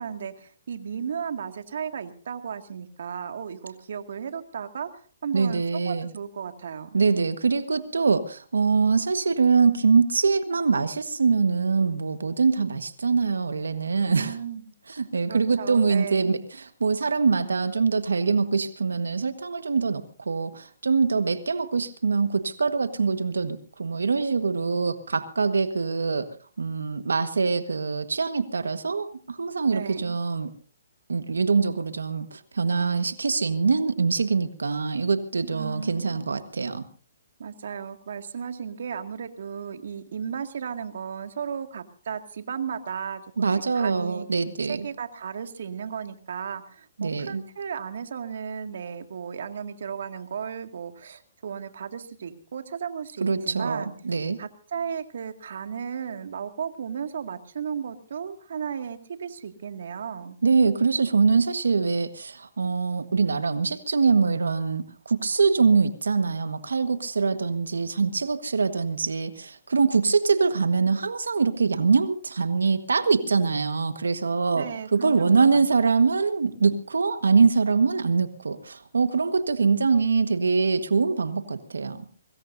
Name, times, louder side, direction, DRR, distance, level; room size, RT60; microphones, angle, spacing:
voice 1, 0.0-4.9 5.2-6.9 14.1-14.7 15.3-16.3 29.7-30.2 35.4-36.2 37.4-44.3 44.7-53.9 54.4-60.4 74.5-75.9, right 7 dB, 65° right, 7 dB, 2.1 m, -35 dB
voice 2, 5.3-6.1 6.9-14.3 15.0-30.5 31.1-36.8 43.4-44.9 47.0-47.4 53.2-54.4 60.4-82.0, right 4 dB, 85° right, 11 dB, 1.5 m, -24 dB
23.5 x 20.0 x 2.7 m, 0.42 s
hypercardioid pair, 140°, 0 cm